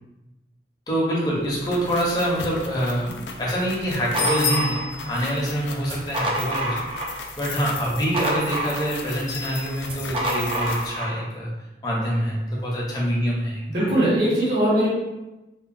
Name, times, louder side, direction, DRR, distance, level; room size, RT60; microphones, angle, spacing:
voice 1, 0.9-6.8 7.4-11.5 11.8-13.6, equal, 20° left, -5 dB, 0.6 m, -25 dB
sound 1, 1.3-10.9, left 4 dB, 90° left, 0.4 m, -34 dB
sound 2, 3.8-5.3 5.8-7.3 7.6-9.2 9.8-11.2, right 1 dB, 30° right, 0.4 m, -28 dB
voice 2, 13.7-14.9, right 1 dB, 65° right, -9 dB, 1.0 m, -20 dB
2.9 x 2.2 x 2.5 m, 1.0 s
head